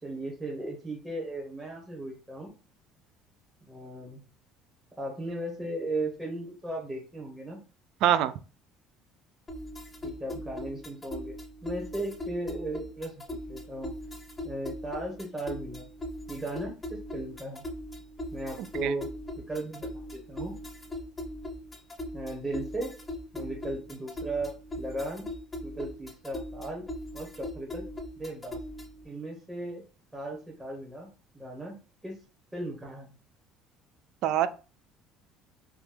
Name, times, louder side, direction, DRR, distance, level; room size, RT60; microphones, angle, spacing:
voice 1, 0.0-2.5 3.7-4.2 5.0-7.6 10.0-11.3 11.6-13.9 14.4-15.9 16.3-17.6 18.3-19.1 19.5-20.5 22.1-22.9 23.3-25.3 25.6-26.8 27.1-27.8 28.2-28.6 29.0-29.8 30.1-31.1 31.3-31.8 32.0-32.2 32.5-33.1, right 2 dB, 15° right, -3 dB, 1.0 m, -36 dB
voice 2, 8.0-8.3 18.8-18.9 34.2-34.5, right 11 dB, 70° right, 13 dB, 0.3 m, -23 dB
sound 1, 9.5-29.0, left 1 dB, 20° left, 0.7 m, -40 dB
3.1 x 2.2 x 3.3 m, 0.34 s
supercardioid pair, 85°, 0 cm